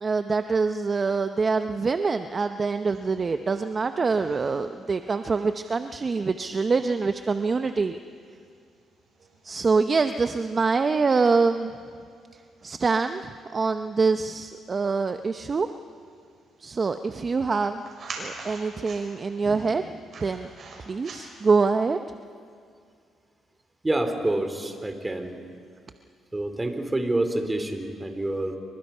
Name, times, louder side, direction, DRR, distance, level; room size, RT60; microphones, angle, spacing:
voice 1, 0.0-8.0 9.4-11.7 12.6-15.7 16.6-17.9 18.2-19.8 20.2-20.5 20.8-22.0, right 4 dB, 35° right, 8 dB, 0.7 m, -25 dB
sound 1, 2.2-21.7, right 3 dB, 55° right, 7.1 m, -48 dB
voice 2, 23.8-25.4 26.3-28.6, right 1 dB, 15° right, 6 dB, 2.9 m, -27 dB
28.5 x 23.5 x 5.6 m, 2.3 s
cardioid pair, 90°, 0 cm